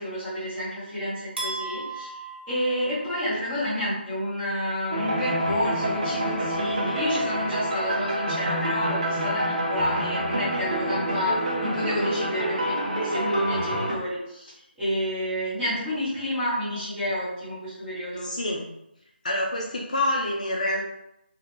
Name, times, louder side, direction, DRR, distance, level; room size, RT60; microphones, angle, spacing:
voice 1, 0.0-2.2 2.5-14.5 14.8-18.3, equal, 5° right, -13 dB, 0.8 m, -29 dB
sound 1, 1.4-3.5, right 3 dB, 75° right, 0.9 m, -36 dB
sound 2, 4.9-13.9, right 1 dB, 40° right, 0.6 m, -27 dB
voice 2, 18.2-18.7 19.2-20.8, left 1 dB, 40° left, -2 dB, 0.4 m, -27 dB
2.3 x 2.1 x 2.9 m, 0.82 s
figure-of-eight pair, 170°, 6 cm